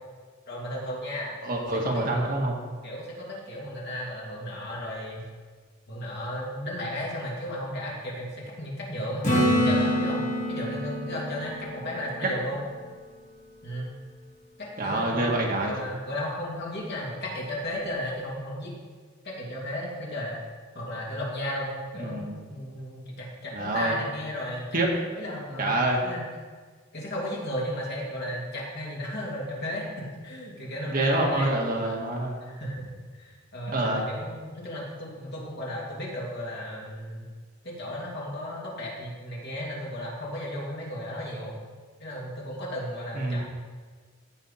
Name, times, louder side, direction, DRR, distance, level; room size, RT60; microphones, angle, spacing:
voice 1, 0.5-1.4 1.7-2.2 2.8-5.2 5.9-12.6 13.6-13.9 14.6-18.7 19.2-20.4 20.7-24.8 25.1-25.7 26.0-26.2 26.9-29.8 30.2-31.5 32.4-32.9 33.1-37.3 37.6-41.5 42.0-43.4, equal, 55° left, -4 dB, 2.7 m, -34 dB
voice 2, 1.4-2.6 14.8-15.7 22.0-22.3 23.5-24.0 24.7-24.9 25.6-26.0 30.9-32.3 33.7-34.1 43.1-43.4, right 2 dB, 45° right, -1 dB, 1.6 m, -26 dB
Acoustic guitar / Strum, 9.2-13.0 17.8-17.9, equal, 35° left, 2.3 m, -27 dB
15.5 x 5.6 x 4.3 m, 1.5 s
head